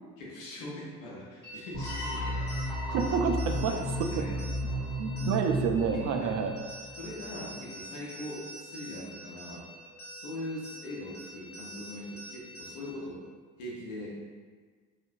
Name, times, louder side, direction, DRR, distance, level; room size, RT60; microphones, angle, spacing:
voice 1, 0.2-2.9 3.6-4.4 4.7-4.8 5.9-6.4 7.0-9.6 10.1-13.2 13.6-14.1, left 1 dB, 70° left, -4 dB, 1.0 m, -41 dB
sound 1, 1.4-13.0, right 1 dB, 25° left, 1.0 m, -47 dB
sound 2, 1.7-6.8, equal, 50° left, 1.2 m, -33 dB
voice 2, 2.9-3.7 5.0-6.5, right 6 dB, 45° right, 4 dB, 0.5 m, -28 dB
4.0 x 2.9 x 2.6 m, 1.5 s
figure-of-eight pair, 55°, 40 cm